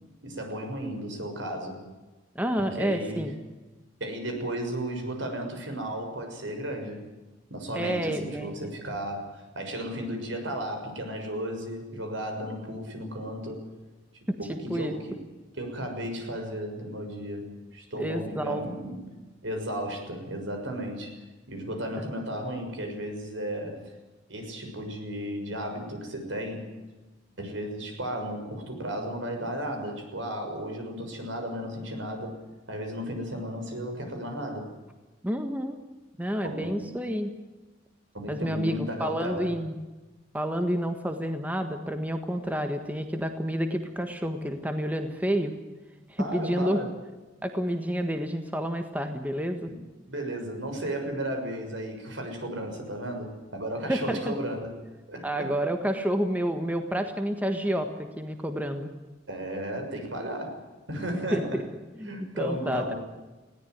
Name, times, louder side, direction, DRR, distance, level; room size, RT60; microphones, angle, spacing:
voice 1, 0.2-1.8 2.6-3.3 4.0-7.1 7.5-13.6 14.4-15.2 15.6-19.1 19.4-21.1 21.5-23.9 24.3-26.7 27.4-32.4 32.7-34.7 36.4-36.9 38.1-39.5 46.2-46.9 50.1-54.7 55.1-55.5 59.3-61.6 62.0-63.0, equal, 70° right, 4 dB, 6.6 m, -34 dB
voice 2, 2.3-3.3 7.7-8.7 14.5-14.9 18.0-18.6 22.0-22.1 35.2-35.8 36.2-37.3 38.3-39.7 40.3-45.5 46.1-46.8 47.4-49.7 53.9-54.2 55.2-58.9 61.3-61.6 62.0-62.9, equal, 10° right, 6 dB, 1.5 m, -29 dB
20.5 x 17.5 x 9.5 m, 1.2 s
head